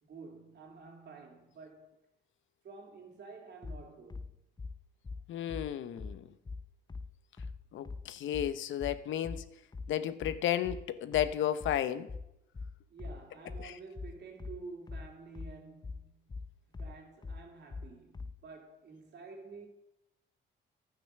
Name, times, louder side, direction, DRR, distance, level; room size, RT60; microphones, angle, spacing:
voice 1, 0.0-2.0 2.6-4.4 12.9-19.7, right 4 dB, 60° right, 3.2 m, -50 dB
sound 1, 3.6-18.4, left 4 dB, 20° left, 0.7 m, -43 dB
voice 2, 5.3-6.3 7.7-9.5 9.9-12.1 13.6-13.7, left 11 dB, 75° left, 0.8 m, -33 dB
11.0 x 9.0 x 6.6 m
cardioid pair, 90°, 20 cm